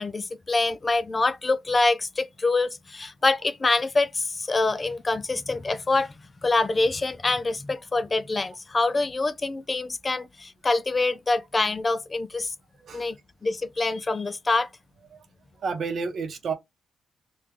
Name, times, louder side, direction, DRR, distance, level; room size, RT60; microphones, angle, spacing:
voice 1, 0.0-6.1 6.4-12.5 12.9-13.2 13.4-14.7, left 3 dB, 20° left, 0.4 m, -25 dB
voice 2, 15.6-16.5, right 5 dB, 50° right, 0.8 m, -30 dB
3.2 x 2.3 x 3.3 m
cardioid pair, 150°, 0 cm